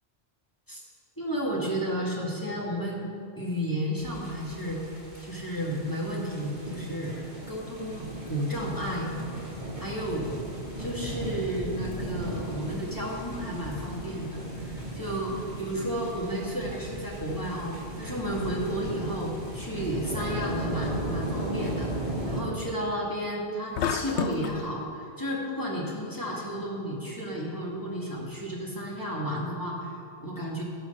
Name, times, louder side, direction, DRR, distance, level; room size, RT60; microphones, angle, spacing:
voice 1, 1.2-4.8 5.2-9.1 9.8-10.3 10.8-30.6, equal, 20° left, -4 dB, 2.0 m, -32 dB
sound 1, 4.0-22.4, right 1 dB, 30° right, 2.4 m, -36 dB
sound 2, 23.8-24.6, left 7 dB, 90° left, 0.9 m, -29 dB
17.0 x 6.2 x 5.5 m, 2.3 s
omnidirectional pair, 1.1 m